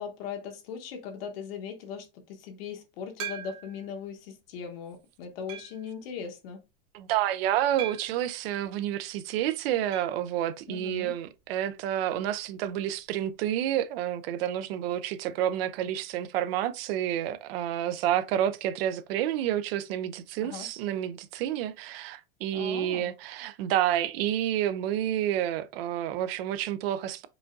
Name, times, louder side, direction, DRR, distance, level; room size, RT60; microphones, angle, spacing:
voice 1, 0.0-6.6 10.7-11.1 20.4-20.7 22.5-23.1, left 7 dB, 80° left, 1.2 m, -39 dB
sound 1, 3.2-3.9 4.5-4.6 5.5-5.9 7.8-8.3 9.9-10.2 10.5-10.6 10.8-10.9 12.9-13.0, right 9 dB, 50° right, 0.9 m, -40 dB
voice 2, 6.9-27.3, right 11 dB, 85° right, 0.5 m, -29 dB
4.8 x 2.4 x 2.6 m
supercardioid pair, 160°, 29 cm